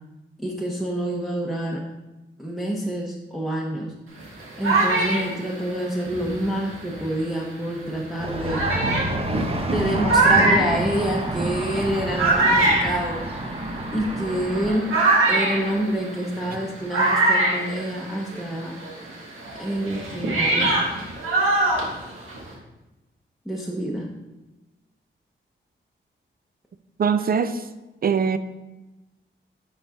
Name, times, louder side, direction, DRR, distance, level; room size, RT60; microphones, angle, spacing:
voice 1, 0.4-1.9 2.4-3.9 4.6-8.8 9.6-13.2 13.9-15.0 15.3-18.8 19.6-20.7 23.5-24.1, right 1 dB, ahead, -2 dB, 0.9 m, -27 dB
sound 1, 4.2-7.2 7.9-8.0 8.5-18.5 18.8-22.5, right 2 dB, 85° right, 2.0 m, -23 dB
sound 2, 8.2-14.7, right 1 dB, 30° right, 1.0 m, -30 dB
voice 2, 27.0-27.6 28.0-28.4, right 6 dB, 45° right, 11 dB, 0.5 m, -21 dB
9.9 x 4.0 x 3.7 m, 1.1 s
cardioid pair, 85°, 20 cm